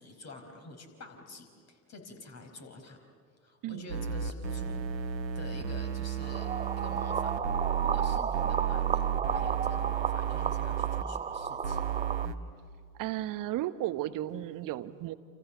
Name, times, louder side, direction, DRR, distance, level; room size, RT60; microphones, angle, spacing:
voice 1, 0.0-3.1 3.4-6.5 6.8-7.3 7.8-9.0 9.3-11.8, left 3 dB, 30° left, 5 dB, 5.0 m, -48 dB
sound 1, 3.9-11.0 11.6-12.3, right 8 dB, 85° right, 1.3 m, -33 dB
sound 2, 6.2-12.3, right 6 dB, 15° right, 0.7 m, -33 dB
voice 2, 13.0-15.1, right 14 dB, 40° right, 13 dB, 1.2 m, -34 dB
29.5 x 28.0 x 7.2 m, 2.1 s
figure-of-eight pair, 75°, 50 cm